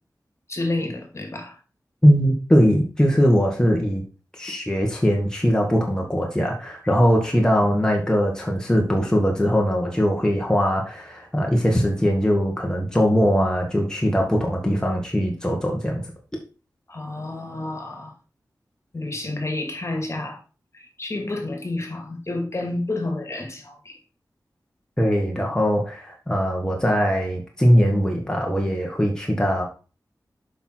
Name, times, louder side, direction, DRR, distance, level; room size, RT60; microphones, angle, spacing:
voice 1, 0.5-1.6 16.9-18.1 18.9-20.4 20.7-24.0, left 2 dB, 40° left, 2.3 m, -30 dB
voice 2, 2.0-4.0 4.3-16.0 25.0-29.6, equal, 10° left, 1.7 m, -20 dB
7.0 x 5.7 x 4.6 m
wide cardioid pair, 75°, 7 cm